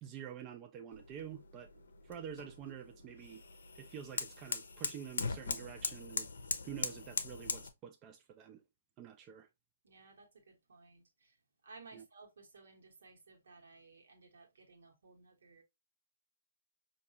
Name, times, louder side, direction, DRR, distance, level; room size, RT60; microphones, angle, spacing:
voice 1, 0.0-1.7 2.0-3.4 3.7-6.3 6.6-8.6 9.0-9.5 11.9-12.0, right 9 dB, 25° right, 0.3 m, -48 dB
sound 1, 0.9-7.7, left 4 dB, 75° left, 0.6 m, -41 dB
voice 2, 9.8-11.4 11.6-15.6, right 3 dB, 70° right, 1.2 m, -58 dB
4.6 x 2.5 x 2.7 m
figure-of-eight pair, 130°, 0 cm